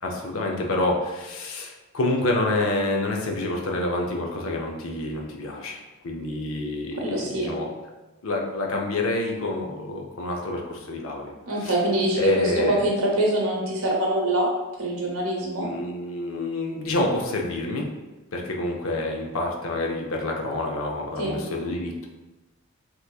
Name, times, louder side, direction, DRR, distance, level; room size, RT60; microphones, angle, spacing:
voice 1, 0.0-7.7 8.2-11.3 11.6-11.7 12.1-12.8 15.6-17.9 18.3-22.1, left 2 dB, 65° left, 1 dB, 0.5 m, -27 dB
voice 2, 7.0-7.5 11.5-14.5 14.8-15.7 21.2-21.4, right 1 dB, 75° right, -2 dB, 0.9 m, -24 dB
3.4 x 2.9 x 2.3 m, 1.1 s
head